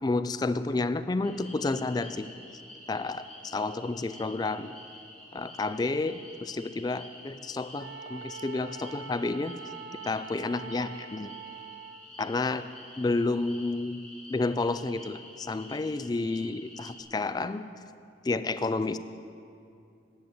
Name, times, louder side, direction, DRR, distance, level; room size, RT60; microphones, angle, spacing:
voice 1, 0.0-2.3 2.9-4.8 5.3-9.5 10.0-11.3 12.2-12.7 13.0-14.0 14.3-17.6 18.2-19.0, left 3 dB, 20° left, 13 dB, 0.3 m, -30 dB
sound 1, 1.2-17.0, left 1 dB, 5° left, 1.3 m, -49 dB
Wind instrument woodwind instrument, 7.8-12.1, right 6 dB, 60° right, 0.5 m, -44 dB
9.6 x 9.1 x 7.6 m, 2.6 s
head